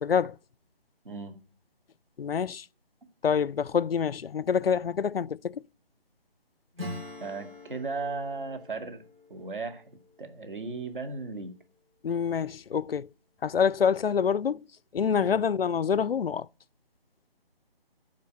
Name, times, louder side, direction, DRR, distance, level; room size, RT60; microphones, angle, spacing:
voice 1, 0.0-0.4 2.2-2.7 3.2-5.6 12.0-13.1 13.4-14.6 14.9-16.5, left 7 dB, 70° left, 0.4 m, -26 dB
voice 2, 1.0-1.4 7.2-9.0 9.3-9.9 10.2-11.5 15.2-15.4, right 3 dB, 55° right, 2.1 m, -36 dB
Acoustic guitar / Strum, 6.7-11.1, left 2 dB, 70° right, 4.0 m, -44 dB
12.5 x 4.8 x 7.8 m
figure-of-eight pair, 155°, 30 cm